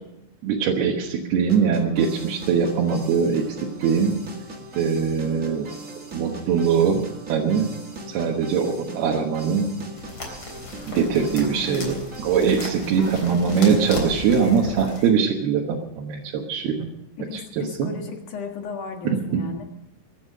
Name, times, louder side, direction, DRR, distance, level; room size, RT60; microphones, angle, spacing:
voice 1, 0.4-3.6 3.8-4.2 4.8-5.7 6.1-7.0 7.3-7.7 8.1-8.7 9.0-9.7 10.9-16.7 17.3-17.4 17.8-17.9 19.0-19.4, right 6 dB, 75° right, -1 dB, 3.2 m, -22 dB
sound 1, 1.5-14.4, right 2 dB, 40° right, 1.0 m, -40 dB
sound 2, 10.0-15.1, left 2 dB, 30° left, 4.0 m, -36 dB
voice 2, 11.5-12.0 13.0-13.4 17.2-19.6, left 4 dB, 60° left, 3 dB, 2.7 m, -36 dB
23.0 x 9.5 x 6.6 m, 0.86 s
omnidirectional pair, 4.8 m